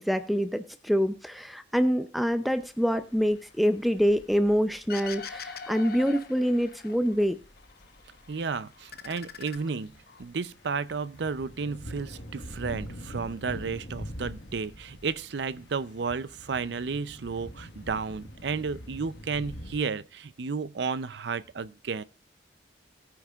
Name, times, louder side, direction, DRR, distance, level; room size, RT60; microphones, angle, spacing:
voice 1, 0.0-7.4, equal, ahead, 0.5 m, -26 dB
sound 1, 2.5-19.8, equal, 75° left, 1.5 m, -45 dB
sound 2, 4.9-7.2 7.6-8.4 8.7-10.2, left 5 dB, 55° left, 0.9 m, -42 dB
voice 2, 8.3-9.9 10.2-22.0, right 5 dB, 65° right, 0.5 m, -32 dB
18.0 x 9.3 x 2.4 m
head